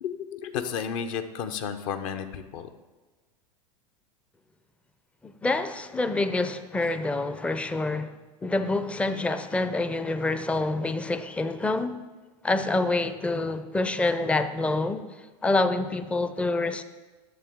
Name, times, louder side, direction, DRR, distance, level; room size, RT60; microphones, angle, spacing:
voice 1, 0.0-2.7, left 7 dB, 55° left, 0.7 m, -32 dB
voice 2, 5.2-8.1 8.4-12.0 12.4-15.0 15.4-16.8, left 2 dB, 5° left, 0.4 m, -27 dB
11.0 x 7.0 x 3.6 m
figure-of-eight pair, 85°, 20 cm